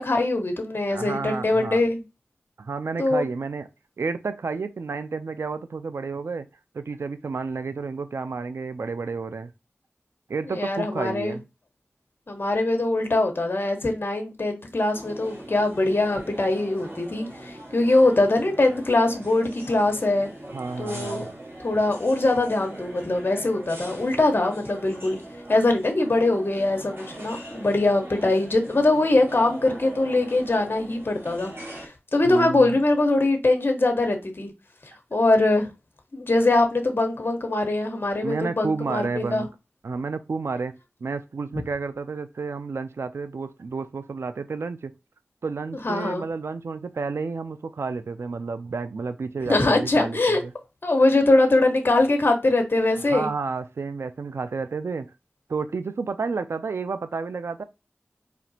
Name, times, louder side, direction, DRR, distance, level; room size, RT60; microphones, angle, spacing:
voice 1, 0.0-2.0 3.0-3.3 10.5-11.4 12.3-20.3 20.8-21.2 21.6-25.2 25.5-34.5 35.1-35.7 36.1-39.5 45.8-46.2 49.5-50.4 50.8-53.3, left 2 dB, 55° left, 1.0 m, -22 dB
voice 2, 0.9-1.8 2.6-3.7 4.0-6.5 6.7-9.5 10.3-11.4 20.5-21.3 32.3-32.8 38.2-39.5 39.8-40.7 41.0-44.9 45.4-50.5 53.1-55.1 55.5-57.6, right 4 dB, 85° right, 0.4 m, -31 dB
sound 1, 14.9-31.9, right 1 dB, 60° right, 1.6 m, -41 dB
4.2 x 2.8 x 2.7 m
wide cardioid pair, 45°, 4 cm